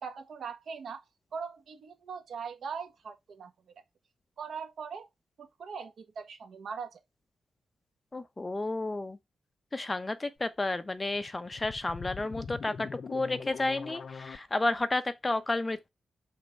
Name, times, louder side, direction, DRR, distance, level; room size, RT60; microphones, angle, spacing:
voice 1, 0.0-1.0 1.3-3.7 4.4-5.1 5.4-7.0, right 6 dB, 60° right, 1.6 m, -41 dB
voice 2, 8.1-9.2 9.7-15.9, left 2 dB, 15° left, 0.9 m, -31 dB
sound 1, 11.1-14.4, left 5 dB, 45° left, 0.5 m, -42 dB
5.9 x 4.4 x 5.8 m
wide cardioid pair, 160°, 0 cm